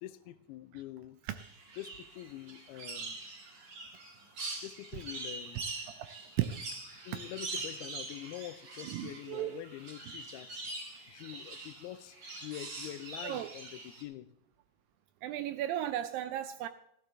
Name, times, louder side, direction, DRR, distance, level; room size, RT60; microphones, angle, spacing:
voice 1, 0.0-1.2 1.8-3.2 4.6-5.7 7.1-10.6 11.1-12.2 12.4-14.3, left 14 dB, 85° left, 2.6 m, -45 dB
sound 1, 1.4-14.0, right 3 dB, 40° right, 1.7 m, -44 dB
voice 2, 6.4-6.8 8.8-9.6 13.2-13.5 15.2-16.7, right 12 dB, 85° right, 2.1 m, -35 dB
14.5 x 12.0 x 3.2 m
omnidirectional pair, 4.4 m